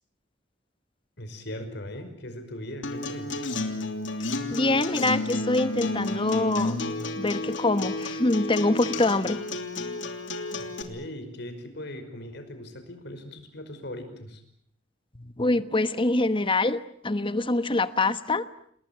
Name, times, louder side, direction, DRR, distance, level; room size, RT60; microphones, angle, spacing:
voice 1, 1.2-3.3 10.6-14.4, left 1 dB, 60° left, 8 dB, 5.4 m, -39 dB
Acoustic guitar, 2.8-10.8, left 2 dB, 75° left, 3.1 m, -31 dB
voice 2, 4.4-6.8 7.1-9.4 15.1-18.5, left 2 dB, 25° left, 13 dB, 1.2 m, -25 dB
29.0 x 20.5 x 8.8 m, 0.66 s
head